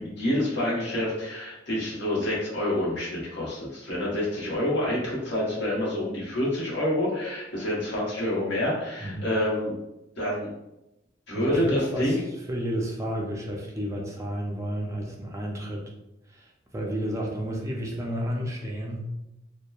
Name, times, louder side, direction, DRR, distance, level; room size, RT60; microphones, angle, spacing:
voice 1, 0.0-9.7 10.2-10.5 11.3-12.2, left 1 dB, 65° left, -5 dB, 1.0 m, -27 dB
voice 2, 11.3-15.9 16.3-19.1, equal, 15° right, -1 dB, 0.3 m, -32 dB
2.8 x 2.1 x 2.3 m, 0.90 s
head